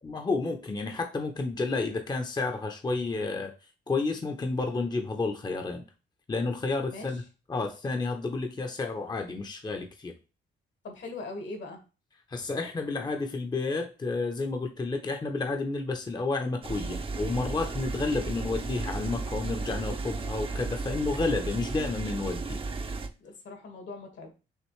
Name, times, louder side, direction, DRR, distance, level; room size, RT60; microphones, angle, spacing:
voice 1, 0.0-3.5 3.9-5.8 6.3-7.2 7.5-10.1 12.3-22.6, left 3 dB, 20° left, 4 dB, 0.7 m, -31 dB
voice 2, 6.9-7.2 10.8-11.8 23.2-24.3, left 3 dB, 65° left, 4 dB, 1.7 m, -41 dB
sound 1, 16.6-23.1, right 3 dB, 30° right, 0.6 m, -34 dB
6.5 x 2.5 x 3.1 m, 0.32 s
cardioid pair, 90°, 20 cm